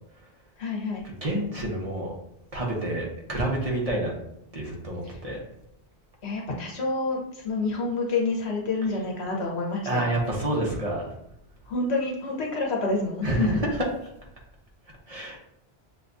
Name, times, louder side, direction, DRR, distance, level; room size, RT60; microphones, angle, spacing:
voice 1, 0.6-1.1 5.0-5.2 6.2-10.0 11.7-13.6, left 3 dB, 85° left, -1 dB, 1.3 m, -28 dB
voice 2, 1.2-2.2 2.5-4.1 4.5-5.4 9.8-11.1 13.2-13.7 15.1-15.4, right 1 dB, 35° right, -2 dB, 1.0 m, -28 dB
6.7 x 2.3 x 2.6 m, 0.78 s
omnidirectional pair, 1.1 m